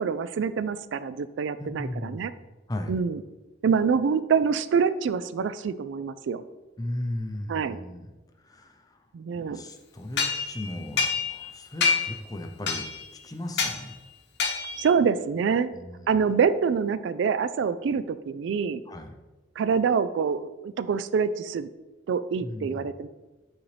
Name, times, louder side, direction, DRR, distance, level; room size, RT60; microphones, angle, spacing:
voice 1, 0.0-2.3 2.9-3.2 3.6-6.4 7.5-7.8 9.1-9.6 14.8-15.7 16.1-18.8 19.6-21.7 22.1-23.1, right 6 dB, 75° right, 14 dB, 0.3 m, -26 dB
voice 2, 1.6-2.3 2.7-3.0 6.8-8.1 8.4-9.0 9.3-14.0 15.7-16.2 18.9-19.1 22.4-22.8, left 1 dB, 20° left, 5 dB, 0.6 m, -36 dB
sound 1, 10.2-11.5 11.8-12.2 12.7-13.1 13.6-13.8 14.4-14.9, left 5 dB, 65° left, 0.9 m, -27 dB
8.6 x 4.0 x 3.3 m, 1.1 s
head